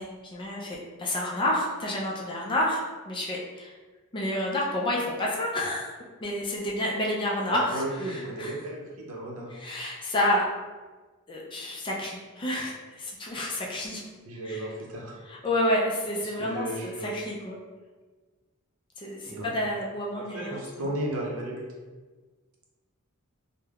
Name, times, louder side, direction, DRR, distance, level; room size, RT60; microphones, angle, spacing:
voice 1, 0.0-3.7 4.1-5.9 6.2-8.5 9.5-10.5 11.3-14.0 14.4-14.7 15.3-17.6 19.0-20.6, left 1 dB, 20° left, -3 dB, 0.4 m, -29 dB
voice 2, 7.5-9.5 14.3-15.2 16.2-17.2 19.2-19.5 20.1-21.7, right 1 dB, 70° right, -2 dB, 0.6 m, -34 dB
3.2 x 2.1 x 2.3 m, 1.3 s
head